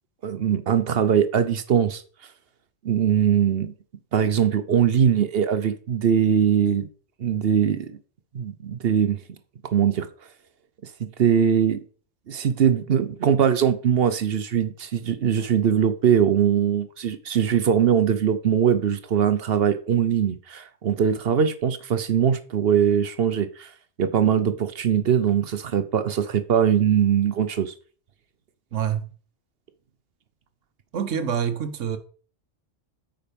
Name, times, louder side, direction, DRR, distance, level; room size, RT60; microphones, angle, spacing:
voice 1, 0.2-2.0 2.8-3.7 4.1-6.9 7.2-8.0 8.3-9.2 9.7-10.1 11.0-11.8 12.3-23.7 24.0-27.7, right 8 dB, 55° right, 0.9 m, -21 dB
voice 2, 28.7-29.1 30.9-32.0, right 8 dB, 75° right, 1.3 m, -26 dB
8.9 x 5.3 x 5.2 m
omnidirectional pair, 1.3 m